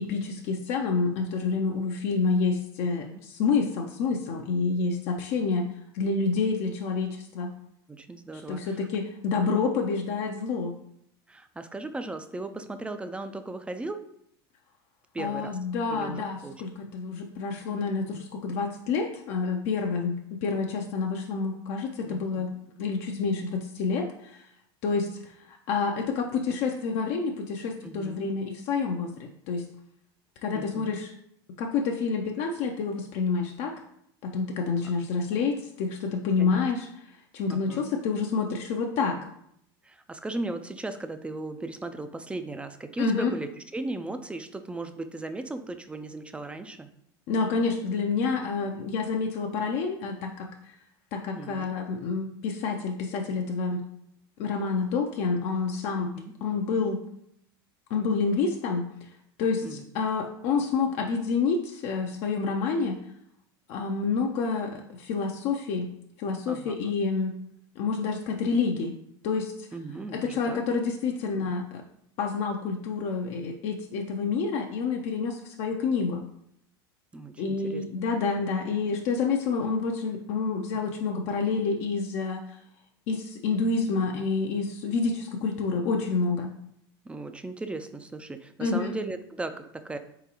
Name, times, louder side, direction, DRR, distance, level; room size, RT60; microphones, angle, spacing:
voice 1, 0.0-5.7 5.9-7.5 8.5-10.7 15.2-22.5 22.8-24.5 24.8-29.6 30.4-31.1 31.6-33.7 34.2-37.1 37.3-39.2 43.0-43.3 47.3-50.7 51.1-53.8 54.4-56.1 56.4-57.0 57.9-59.1 59.4-63.0 63.7-65.9 66.2-67.4 67.8-68.9 69.2-69.7 70.1-71.8 72.2-76.2 77.4-82.6 83.1-86.5 88.6-88.9, left 4 dB, 55° left, 2 dB, 0.5 m, -28 dB
voice 2, 7.9-8.8 11.3-14.0 15.1-15.6 15.9-16.5 18.1-18.2 18.5-18.6 22.1-22.5 27.8-28.3 30.5-30.9 36.4-36.7 37.5-37.9 39.8-46.9 51.4-51.7 56.0-56.3 59.6-59.8 66.5-66.9 69.7-70.6 71.4-71.6 77.1-77.8 87.1-90.0, right 2 dB, 10° right, 9 dB, 0.3 m, -37 dB
3.9 x 3.8 x 2.9 m, 0.72 s
hypercardioid pair, 100°, 13 cm